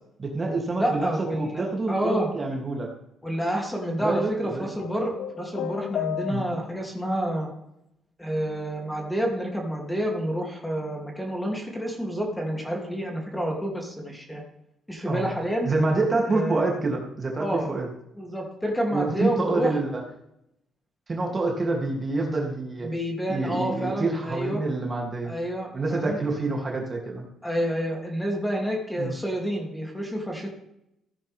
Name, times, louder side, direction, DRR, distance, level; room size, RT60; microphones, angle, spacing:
voice 1, 0.2-1.1 1.4-2.9 4.0-4.7 6.3-6.5 15.0-15.3 15.6-17.9 18.9-20.0 21.1-22.9 23.3-25.3 25.7-27.3 29.0-29.1, right 3 dB, 30° right, 0 dB, 2.9 m, -27 dB
voice 2, 0.8-2.3 3.2-7.5 8.2-14.4 14.9-15.7 16.3-16.7 17.4-17.7 18.2-19.8 22.8-24.6 25.2-26.2 27.4-30.5, equal, 5° left, 0 dB, 2.9 m, -29 dB
sound 1, 4.8-6.9, left 10 dB, 75° left, 0.5 m, -33 dB
15.0 x 9.7 x 3.6 m, 0.79 s
cardioid pair, 90°, 0 cm